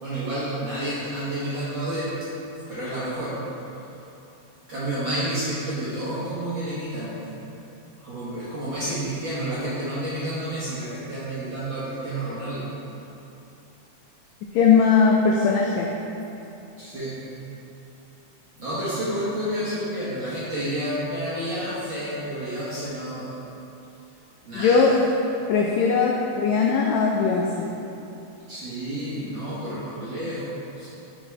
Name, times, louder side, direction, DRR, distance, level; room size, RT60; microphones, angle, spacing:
voice 1, 0.0-2.2 2.7-3.4 4.7-7.2 8.0-12.7 16.8-17.2 18.6-23.3 24.4-25.0 28.5-30.9, right 1 dB, 55° right, -10 dB, 1.4 m, -30 dB
voice 2, 14.5-15.9 24.5-24.9 25.5-27.7, left 5 dB, 85° left, -1 dB, 1.5 m, -19 dB
9.8 x 4.6 x 3.2 m, 2.9 s
omnidirectional pair, 3.7 m